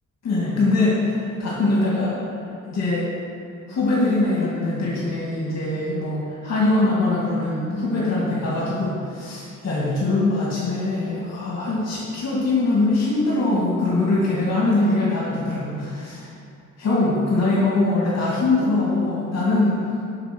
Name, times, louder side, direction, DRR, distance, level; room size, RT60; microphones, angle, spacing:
voice 1, 0.2-2.2 2.7-3.1 3.7-16.3 16.8-19.8, left 2 dB, 55° left, -6 dB, 2.3 m, -22 dB
10.0 x 6.2 x 6.0 m, 2.6 s
wide cardioid pair, 165°, 31 cm